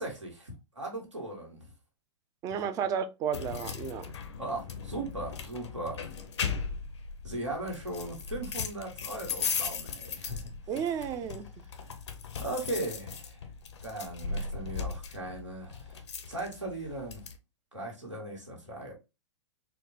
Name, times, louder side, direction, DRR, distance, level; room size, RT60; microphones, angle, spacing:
voice 1, 0.0-1.7 2.6-2.7 4.4-6.0 7.2-10.5 12.4-13.4 13.8-16.0 16.3-17.3 17.7-18.9, right 2 dB, 90° right, 1.5 m, -38 dB
voice 2, 2.4-4.1 10.7-11.5, right 7 dB, 20° right, 0.4 m, -32 dB
sound 1, 3.3-17.4, left 6 dB, 70° left, 0.7 m, -38 dB
4.2 x 2.1 x 2.9 m
figure-of-eight pair, 110°, 15 cm